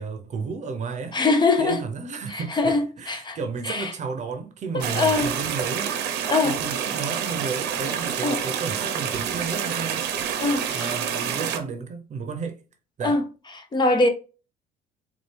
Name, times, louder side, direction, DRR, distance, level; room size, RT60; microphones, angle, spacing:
voice 1, 0.0-1.2 1.6-5.9 6.4-10.1 10.7-12.6 13.0-13.2, right 5 dB, 45° right, 0.8 m, -32 dB
voice 2, 1.1-1.8 2.3-3.4 3.6-3.9 4.7-5.3 6.3-6.6 8.2-8.4 10.4-10.9 13.0-13.2 13.6-14.1, left 3 dB, 25° left, 0.7 m, -22 dB
sound 1, 4.8-11.6, right 8 dB, 80° right, 0.8 m, -28 dB
4.2 x 2.5 x 3.3 m
cardioid pair, 110°, 17 cm